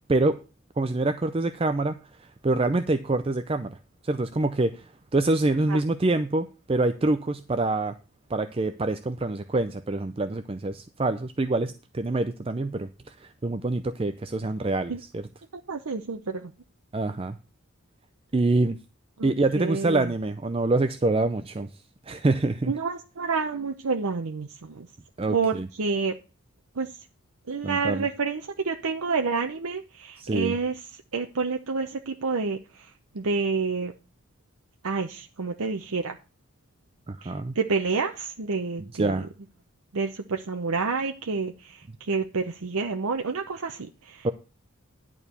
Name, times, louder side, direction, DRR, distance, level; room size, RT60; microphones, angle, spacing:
voice 1, 0.8-1.9 2.2-3.8 4.0-7.9 8.3-15.3 16.9-17.4 18.3-18.8 19.2-21.7 22.1-22.7 25.2-25.7 27.6-28.1 30.2-30.5 37.1-37.6 38.8-39.3 44.2-44.3, right 2 dB, 25° right, 10 dB, 0.4 m, -26 dB
voice 2, 15.7-16.5 19.2-20.1 22.7-24.9 25.3-25.5 25.8-26.1 26.8-26.9 27.5-30.8 31.1-32.6 33.1-33.9 34.8-36.1 37.2-39.2 39.9-44.3, right 4 dB, 85° right, 4 dB, 0.7 m, -29 dB
11.0 x 4.6 x 6.7 m, 0.33 s
head